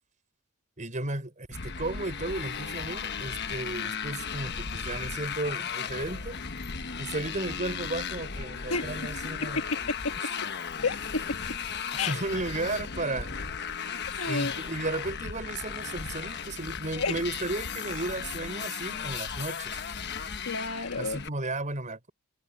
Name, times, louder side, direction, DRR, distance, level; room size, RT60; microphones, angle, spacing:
voice 1, 0.8-6.4 7.0-9.7 12.1-13.3 14.3-19.8 21.0-22.1, right 2 dB, 35° right, 5.5 m, -34 dB
Motorcycle, 1.5-21.3, left 6 dB, 50° left, 1.2 m, -36 dB
voice 2, 8.7-9.1 9.4-10.1 10.8-11.4 11.9-12.2 14.1-14.5 17.0-17.2 20.4-21.2, left 4 dB, 70° left, 1.4 m, -31 dB
head